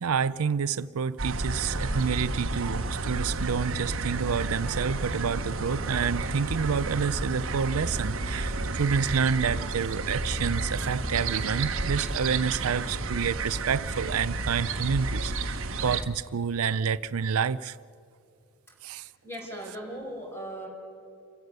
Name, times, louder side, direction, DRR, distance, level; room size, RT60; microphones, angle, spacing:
voice 1, 0.0-17.8 18.8-19.1, right 6 dB, 90° right, 0.5 m, -28 dB
sound 1, 1.2-16.0, right 2 dB, 70° right, 1.3 m, -31 dB
voice 2, 19.2-20.7, right 1 dB, 10° left, 5.1 m, -38 dB
29.0 x 16.0 x 6.7 m
head